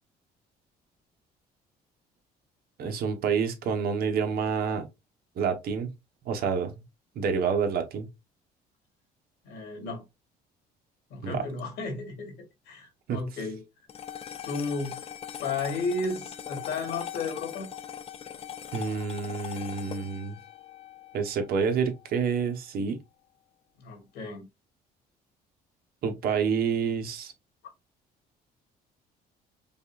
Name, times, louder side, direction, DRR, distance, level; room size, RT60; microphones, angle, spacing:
voice 1, 2.8-4.9 5.4-5.9 6.2-6.8 7.1-8.1 11.2-11.4 13.1-13.2 18.7-20.4 21.1-23.0 26.0-27.3, right 6 dB, 65° right, 1.0 m, -28 dB
voice 2, 9.4-10.0 11.1-12.3 12.7-13.6 14.4-15.0 15.4-17.7 23.8-24.5, left 3 dB, 80° left, 2.2 m, -33 dB
sound 1, 13.9-22.4, left 9 dB, 35° left, 0.4 m, -41 dB
5.3 x 2.4 x 2.4 m
cardioid pair, 110°, 17 cm